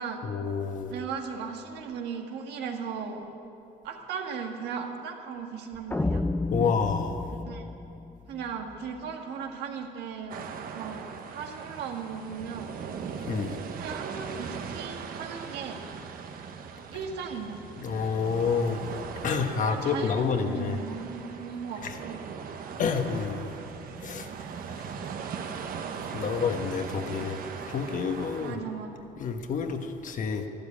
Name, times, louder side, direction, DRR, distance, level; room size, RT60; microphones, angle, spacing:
voice 1, 0.2-0.9 6.5-7.3 13.3-13.6 17.8-18.8 19.2-20.8 21.8-22.0 22.8-23.4 24.0-24.3 26.1-27.4 27.7-28.6 29.2-30.4, left 5 dB, 50° left, 6 dB, 1.3 m, -28 dB
voice 2, 0.9-3.2 3.8-6.2 7.3-7.6 8.3-10.4 10.7-12.7 13.8-15.8 16.9-17.6 19.6-22.2 28.4-29.1, right 6 dB, 80° right, 3 dB, 1.7 m, -37 dB
sound 1, 5.9-9.0, left 2 dB, 10° left, 0.5 m, -31 dB
sound 2, 10.3-28.5, right 6 dB, 60° right, 1.2 m, -39 dB
12.5 x 12.0 x 8.6 m, 2.8 s
cardioid pair, 110°, 17 cm